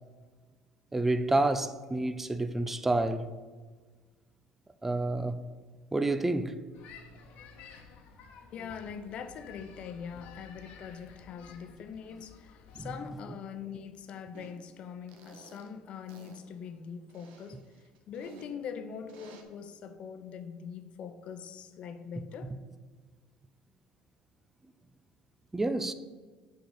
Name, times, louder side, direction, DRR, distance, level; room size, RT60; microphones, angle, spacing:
voice 1, 0.9-3.3 4.8-5.4 5.9-6.6 12.8-12.9 25.5-25.9, right 2 dB, 10° right, 0.5 m, -29 dB
sound 1, 6.7-13.0, left 5 dB, 70° left, 1.2 m, -52 dB
voice 2, 8.5-22.6, left 7 dB, 55° left, 0.8 m, -43 dB
sound 2, 14.3-14.6 15.1-15.7 16.1-16.4 17.1-18.5 19.1-19.4, right 4 dB, 80° right, 1.1 m, -53 dB
6.4 x 4.8 x 6.5 m
supercardioid pair, 95°, 2 cm